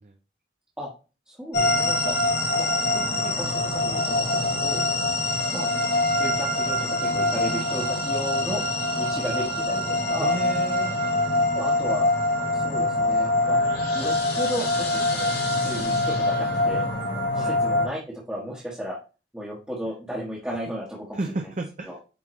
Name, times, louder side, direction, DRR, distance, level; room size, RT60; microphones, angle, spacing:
voice 1, 1.3-2.2 2.6-4.8 5.5-5.7 6.1-8.6 9.0-9.8 10.1-10.4 11.5-12.1 12.5-13.6 13.9-15.3 15.6-16.9 17.3-19.0 19.3-21.5 21.9-22.0, equal, 5° right, -7 dB, 1.2 m, -34 dB
sound 1, 1.5-17.9, left 2 dB, 60° left, 1.7 m, -24 dB
voice 2, 10.2-11.0 17.3-17.5 21.1-22.0, right 2 dB, 40° right, 3 dB, 0.6 m, -32 dB
8.8 x 3.7 x 3.1 m, 0.32 s
head